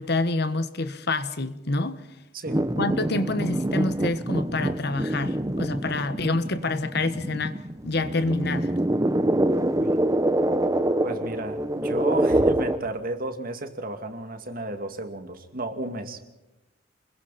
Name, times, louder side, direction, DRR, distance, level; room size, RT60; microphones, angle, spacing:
voice 1, 0.0-2.0 2.8-8.7, left 2 dB, 60° left, 1.4 m, -27 dB
sound 1, 2.5-12.8, right 1 dB, 20° right, 1.0 m, -25 dB
voice 2, 9.6-10.0 11.0-16.2, right 2 dB, 50° right, 2.5 m, -33 dB
30.0 x 22.0 x 4.3 m
head